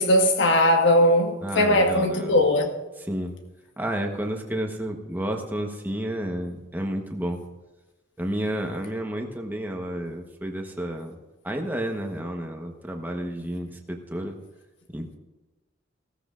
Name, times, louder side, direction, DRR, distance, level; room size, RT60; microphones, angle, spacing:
voice 1, 0.0-2.7, left 1 dB, 85° left, 1.6 m, -19 dB
voice 2, 1.4-2.4 3.1-3.4 3.8-7.4 8.2-11.2 11.4-14.4 14.9-15.2, right 1 dB, 10° right, 1.1 m, -31 dB
16.0 x 13.5 x 2.5 m
head